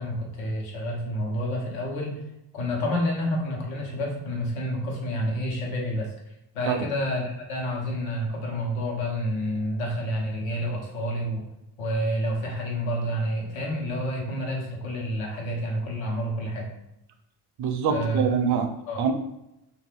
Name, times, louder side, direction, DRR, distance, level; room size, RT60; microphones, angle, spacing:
voice 1, 0.0-2.2 2.5-6.1 6.5-11.4 11.8-16.7 17.9-18.4 18.9-19.0, equal, 85° left, -1 dB, 1.0 m, -29 dB
voice 2, 17.6-18.7 19.0-19.1, right 6 dB, 60° right, 6 dB, 0.5 m, -24 dB
2.6 x 2.5 x 3.4 m, 0.87 s
cardioid pair, 120°, 45 cm